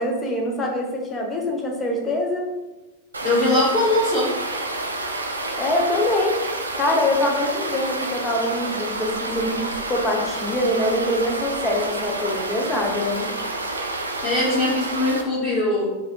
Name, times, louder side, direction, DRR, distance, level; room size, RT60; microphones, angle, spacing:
voice 1, 0.0-2.5 5.6-6.4 6.8-13.3, left 1 dB, 20° left, 0 dB, 0.7 m, -24 dB
sound 1, 3.1-15.2, right 2 dB, 75° right, 0.3 m, -29 dB
voice 2, 3.2-4.3 14.2-15.9, left 2 dB, 40° left, -10 dB, 1.1 m, -21 dB
3.1 x 2.6 x 2.9 m, 1.1 s
figure-of-eight pair, 90°, 0 cm